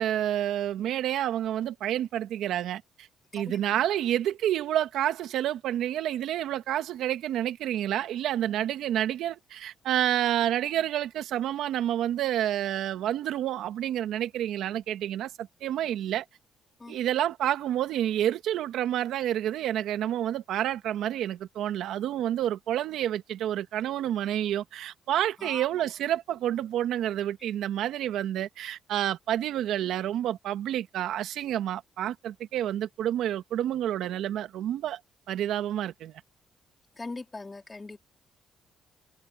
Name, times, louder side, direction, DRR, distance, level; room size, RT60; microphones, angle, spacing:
voice 1, 0.0-3.1 3.3-16.2 16.9-35.0 35.3-36.1, right 11 dB, 80° right, 1.5 m, -29 dB
voice 2, 37.0-38.0, left 3 dB, 25° left, 3.2 m, -40 dB
cardioid pair, 90°, 0 cm